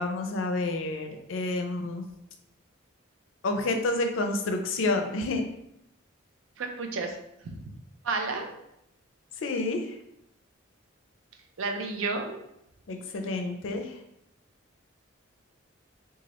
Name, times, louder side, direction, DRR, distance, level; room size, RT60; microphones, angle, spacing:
voice 1, 0.0-2.0 3.4-5.4 9.4-9.8 12.9-14.0, left 2 dB, 70° left, 5 dB, 0.4 m, -29 dB
voice 2, 6.6-7.2 7.4-7.6 8.0-8.5 11.6-12.4, right 3 dB, 75° right, 4 dB, 0.5 m, -31 dB
3.0 x 2.3 x 2.9 m, 0.81 s
head